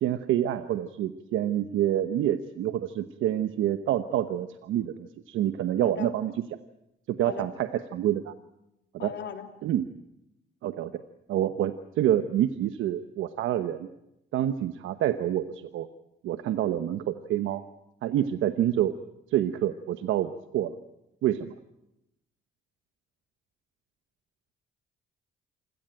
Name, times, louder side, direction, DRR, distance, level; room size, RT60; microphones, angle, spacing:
voice 1, 0.0-6.4 7.1-8.3 8.9-9.1 9.6-9.9 10.6-10.9 11.3-13.9 14.3-15.9 16.2-17.6 18.0-19.0 19.3-20.7 21.2-21.5, right 11 dB, 85° right, 10 dB, 1.1 m, -27 dB
voice 2, 9.0-9.5, left 9 dB, 65° left, 6 dB, 3.3 m, -37 dB
27.0 x 17.0 x 9.0 m, 0.87 s
cardioid pair, 90°, 20 cm